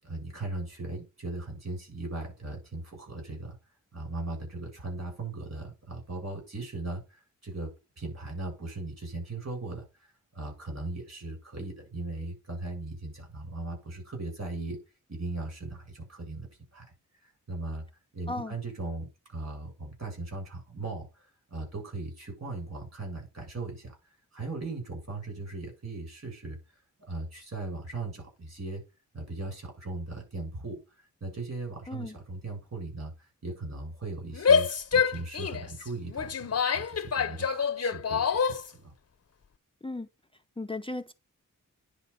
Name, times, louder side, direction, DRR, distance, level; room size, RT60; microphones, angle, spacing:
voice 1, 0.0-3.6 3.9-14.8 15.1-16.9 17.2-17.9 18.1-24.0 24.3-26.6 27.1-28.8 29.1-30.8 31.2-38.9, right 2 dB, 55° right, 7.4 m, -38 dB
Female speech woman speaking / Yell, 34.3-38.7, left 6 dB, 50° left, 0.8 m, -26 dB
voice 2, 40.6-41.1, left 2 dB, 15° left, 0.6 m, -35 dB
10.0 x 4.4 x 7.1 m
wide cardioid pair, 100°, 32 cm